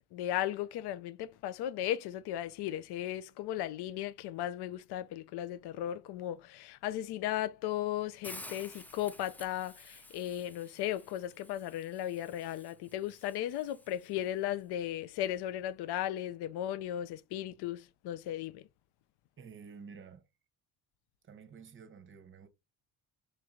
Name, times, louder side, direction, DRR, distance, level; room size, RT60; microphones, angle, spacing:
voice 1, 0.1-18.6, left 12 dB, 70° left, 0.5 m, -36 dB
Hiss, 8.2-14.3, left 1 dB, 5° left, 0.3 m, -52 dB
voice 2, 19.4-20.3 21.2-22.5, right 6 dB, 30° right, 0.8 m, -51 dB
3.2 x 3.0 x 3.6 m
cardioid pair, 130°, 40 cm